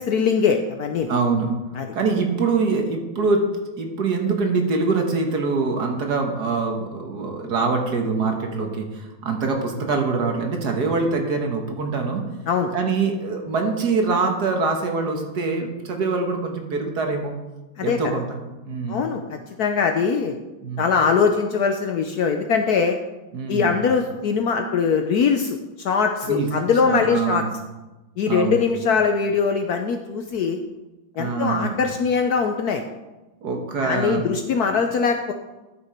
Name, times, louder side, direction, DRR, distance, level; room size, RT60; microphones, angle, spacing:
voice 1, 0.0-1.1 1.8-1.9 12.5-12.7 17.8-18.0 18.9-20.4 20.8-23.0 23.5-27.4 28.2-30.6 31.2-32.8 33.8-35.3, left 5 dB, 65° left, 5 dB, 1.0 m, -22 dB
voice 2, 1.1-1.6 1.9-3.4 3.8-12.2 12.7-17.3 17.8-18.4 18.6-19.0 20.6-20.9 23.3-23.8 26.3-26.5 26.8-27.5 28.2-28.7 31.2-31.8 33.4-34.4, right 4 dB, 55° right, 3 dB, 1.8 m, -24 dB
13.0 x 6.2 x 4.4 m, 1.1 s
omnidirectional pair, 2.1 m